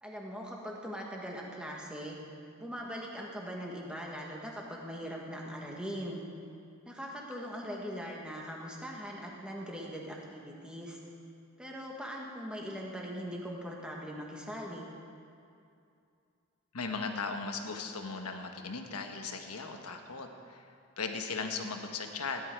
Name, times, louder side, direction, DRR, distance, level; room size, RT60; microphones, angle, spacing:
voice 1, 0.0-2.2 2.6-6.2 6.8-11.0 11.6-14.9, equal, 5° right, -2 dB, 1.7 m, -41 dB
voice 2, 16.7-20.6 21.0-22.4, left 4 dB, 80° left, 4 dB, 1.2 m, -37 dB
17.5 x 11.0 x 4.7 m, 2.5 s
head